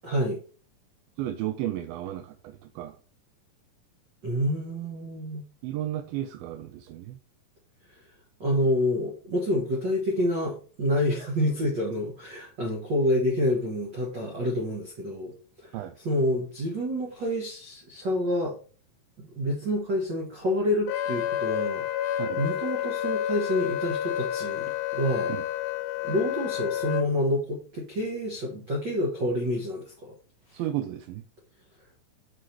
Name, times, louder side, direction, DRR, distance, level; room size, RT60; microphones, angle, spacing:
voice 1, 0.0-0.4 4.2-5.4 8.4-15.3 15.6-18.6 19.2-25.3 26.0-30.1, left 1 dB, 65° right, -2 dB, 1.1 m, -28 dB
voice 2, 1.2-3.0 5.6-7.2 15.7-15.9 22.2-22.4 25.3-25.5 30.5-31.2, right 12 dB, 85° right, 7 dB, 2.4 m, -33 dB
Wind instrument woodwind instrument, 20.9-27.1, left 11 dB, 85° left, 2.4 m, -30 dB
6.1 x 4.9 x 4.4 m, 0.40 s
omnidirectional pair, 4.1 m